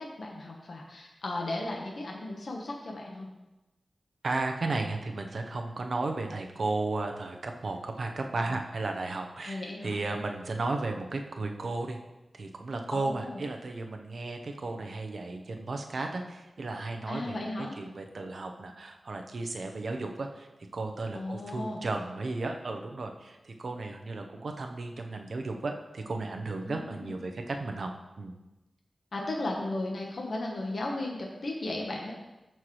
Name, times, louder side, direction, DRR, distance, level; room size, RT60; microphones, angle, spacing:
voice 1, 0.0-3.3 9.4-10.0 12.9-13.4 17.1-17.7 21.1-21.9 26.6-27.2 29.1-32.1, left 2 dB, 70° left, -1 dB, 1.3 m, -35 dB
voice 2, 4.2-12.0 12.3-20.5 20.7-27.9 28.2-28.4, right 3 dB, 70° right, 4 dB, 0.9 m, -34 dB
13.5 x 4.6 x 3.3 m, 1.0 s
cardioid pair, 50°, 0 cm